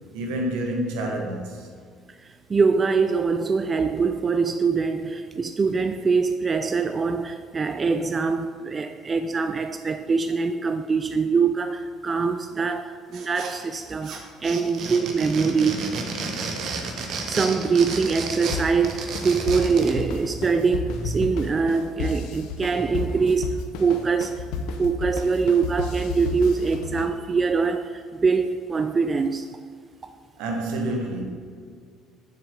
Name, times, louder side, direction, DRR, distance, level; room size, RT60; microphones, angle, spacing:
voice 1, 0.1-1.7 30.4-31.2, right 1 dB, 80° right, 2 dB, 1.3 m, -28 dB
voice 2, 2.2-16.0 17.1-24.5 24.8-29.6, right 5 dB, 30° right, 8 dB, 0.4 m, -23 dB
sound 1, 13.1-13.8 14.0-20.0, right 4 dB, 60° right, 1.1 m, -32 dB
sound 2, 18.5-27.0, left 4 dB, 75° left, 0.6 m, -32 dB
6.9 x 6.4 x 3.8 m, 2.1 s
supercardioid pair, 75°, 0 cm